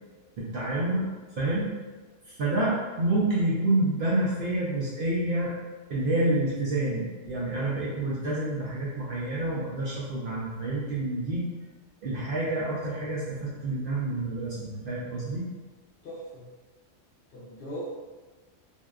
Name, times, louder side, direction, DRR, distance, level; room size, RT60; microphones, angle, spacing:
voice 1, 0.4-1.1 1.4-1.7 2.3-5.5 5.9-11.5 12.0-15.4, right 2 dB, 60° right, -7 dB, 0.6 m, -28 dB
voice 2, 16.0-16.5 17.3-17.9, equal, 60° left, -7 dB, 0.6 m, -39 dB
2.6 x 2.1 x 2.3 m, 1.3 s
omnidirectional pair, 1.3 m